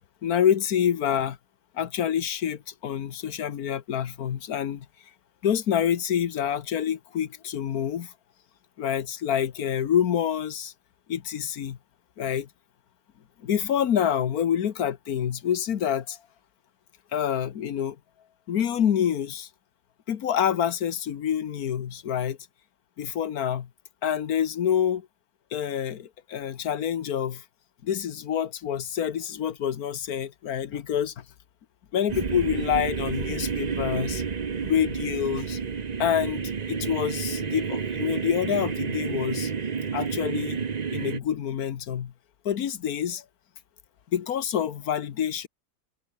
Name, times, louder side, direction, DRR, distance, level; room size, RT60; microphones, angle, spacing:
voice 1, 0.2-1.4 1.7-4.9 5.4-8.1 8.8-10.7 11.1-11.8 12.2-12.5 13.4-16.2 17.1-18.0 18.5-19.5 20.1-22.4 23.0-23.7 24.0-25.1 25.5-27.4 27.8-31.2 31.9-34.2 34.6-35.6 36.0-39.5 39.9-40.6 40.9-42.1 42.4-43.2 44.1-45.5, left 9 dB, 65° left, 1.5 m, -27 dB
sound 1, 32.1-41.2, right 6 dB, 35° right, 0.7 m, -30 dB
omnidirectional pair, 1.7 m